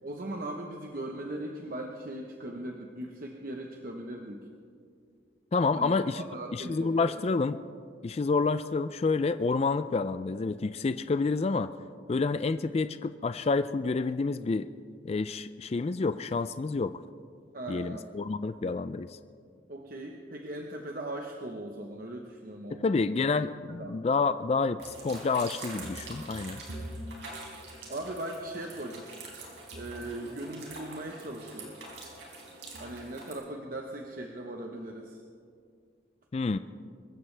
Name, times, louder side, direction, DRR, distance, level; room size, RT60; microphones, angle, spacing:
voice 1, 0.0-4.5 5.7-7.1 17.5-18.1 19.7-23.1 23.7-24.2 27.9-29.2 29.7-31.8 32.8-35.2, right 1 dB, 50° right, 2 dB, 1.0 m, -39 dB
voice 2, 5.5-6.2 6.5-7.6 8.0-11.7 12.1-14.7 15.0-17.0 17.7-19.2 22.7-26.6 36.3-36.6, left 4 dB, 35° left, 12 dB, 0.3 m, -28 dB
sound 1, 24.8-33.3, right 2 dB, 75° right, 4.1 m, -43 dB
24.5 x 14.5 x 3.4 m, 2.2 s
head